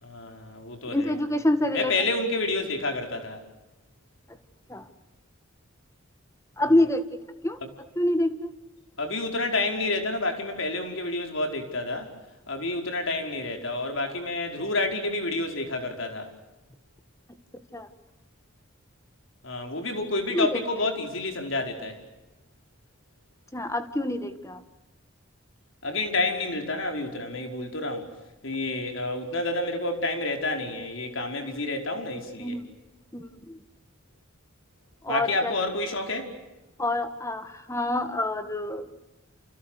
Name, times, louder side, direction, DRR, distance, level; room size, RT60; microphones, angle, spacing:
voice 1, 0.0-1.2 1.7-3.4 9.0-12.1 12.5-16.3 19.4-22.0 25.8-28.1 28.4-32.6 35.1-36.3, left 2 dB, 65° left, 4 dB, 5.2 m, -29 dB
voice 2, 0.9-1.9 4.7-4.8 6.6-7.6 8.0-8.5 17.7-17.9 20.3-20.6 23.5-24.6 32.4-32.6 33.1-33.6 35.0-35.5 36.8-38.9, left 1 dB, 15° left, 10 dB, 1.8 m, -26 dB
29.5 x 29.5 x 6.6 m, 1.0 s
head